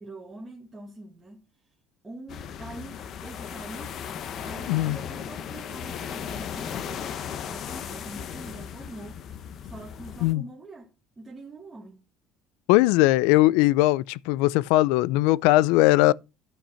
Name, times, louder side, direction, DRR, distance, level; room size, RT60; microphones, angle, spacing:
voice 1, 0.0-1.4 2.0-4.0 4.4-7.2 7.4-9.2 9.6-12.1, right 2 dB, 10° right, 1.6 m, -44 dB
sound 1, 2.3-10.3, left 8 dB, 35° left, 0.9 m, -36 dB
voice 2, 12.7-16.1, left 18 dB, 85° left, 0.4 m, -20 dB
11.5 x 5.8 x 5.7 m
cardioid pair, 175°, 0 cm